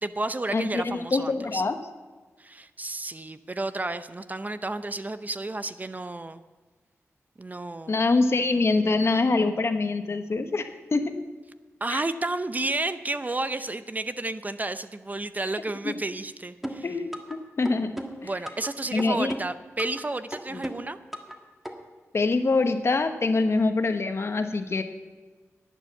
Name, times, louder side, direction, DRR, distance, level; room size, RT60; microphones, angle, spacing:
voice 1, 0.0-1.6 2.4-6.4 7.4-7.9 11.8-16.9 18.2-21.0, right 2 dB, 30° right, 12 dB, 0.6 m, -31 dB
voice 2, 0.5-1.8 7.9-11.1 11.9-12.0 15.8-15.9 16.8-17.9 18.2-18.3 18.9-19.3 20.5-20.6 22.1-24.8, left 3 dB, 55° left, 7 dB, 1.1 m, -25 dB
sound 1, 16.6-17.4 17.7-18.7 19.0-20.0 20.3-21.4 21.7-21.8, equal, 5° right, 1.6 m, -35 dB
11.5 x 9.1 x 7.5 m, 1.3 s
cardioid pair, 60°, 5 cm